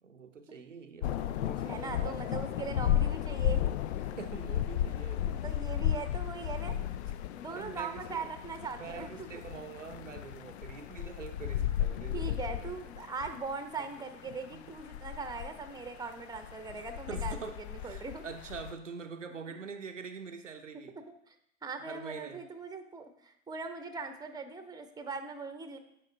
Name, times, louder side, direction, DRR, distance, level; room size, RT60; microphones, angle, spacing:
voice 1, 0.0-2.6 4.0-5.3 7.5-8.3 8.8-12.8 14.0-14.1 14.5-14.6 16.7-21.0 21.8-22.4, right 5 dB, 90° right, 6 dB, 0.6 m, -45 dB
sound 1, 1.0-18.7, left 11 dB, 65° left, 0.5 m, -34 dB
voice 2, 1.7-3.7 5.3-6.7 7.4-9.3 12.1-18.2 19.5-19.6 21.3-21.4 21.6-25.8, right 4 dB, 10° right, 7 dB, 0.9 m, -40 dB
9.7 x 5.6 x 3.3 m, 0.74 s
figure-of-eight pair, 80°, 36 cm